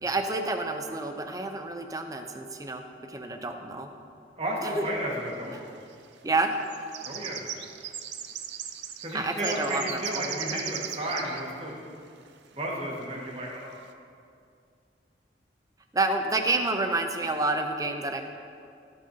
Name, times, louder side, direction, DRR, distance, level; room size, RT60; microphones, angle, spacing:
voice 1, 0.0-2.8 3.1-3.9 4.6-4.8 5.5-5.6 6.2-6.5 9.1-10.0 10.5-10.6 15.9-18.2, right 2 dB, 20° right, 5 dB, 0.6 m, -29 dB
voice 2, 4.4-5.6 7.0-7.4 9.0-11.8 12.5-13.8, right 1 dB, 35° right, -3 dB, 1.7 m, -32 dB
sound 1, 5.0-5.1 5.9-6.1 6.4-11.4 11.7-11.8 12.2-12.3 13.1-13.2 13.7-13.8, right 10 dB, 75° right, 0.5 m, -38 dB
15.0 x 6.5 x 2.8 m, 2.4 s
head